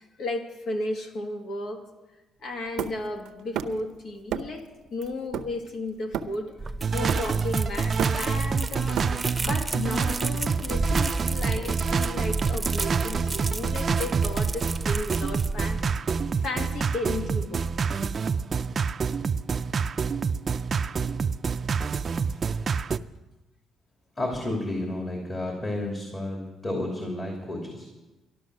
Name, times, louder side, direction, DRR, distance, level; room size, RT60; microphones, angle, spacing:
voice 1, 0.0-1.9 2.4-9.0 9.4-15.8 16.4-17.6 20.6-20.7, left 2 dB, 70° left, 4 dB, 1.9 m, -34 dB
Hammer, 2.8-3.9 4.3-4.6 5.0-6.6 7.1-7.5 7.8-9.5, right 8 dB, 85° right, 0.7 m, -33 dB
sound 1, 6.6-15.9, right 2 dB, 15° right, 0.8 m, -33 dB
sound 2, 6.8-23.0, right 5 dB, 45° right, 0.4 m, -27 dB
voice 2, 24.2-27.9, left 1 dB, 35° left, 0 dB, 3.0 m, -31 dB
13.0 x 12.0 x 6.3 m, 1.1 s
cardioid pair, 90°, 0 cm